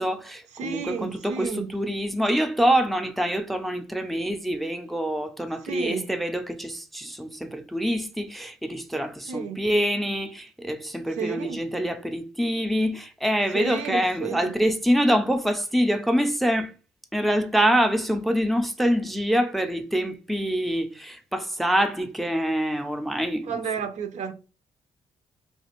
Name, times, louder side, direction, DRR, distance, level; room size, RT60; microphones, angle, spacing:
voice 1, 0.0-16.7 17.1-23.5, equal, ahead, 0.4 m, -25 dB
voice 2, 0.5-1.7 5.7-6.1 9.3-9.7 11.1-11.7 13.5-14.5 23.4-24.3, right 6 dB, 70° right, 0.5 m, -32 dB
3.2 x 2.3 x 2.9 m
supercardioid pair, 65°, 12 cm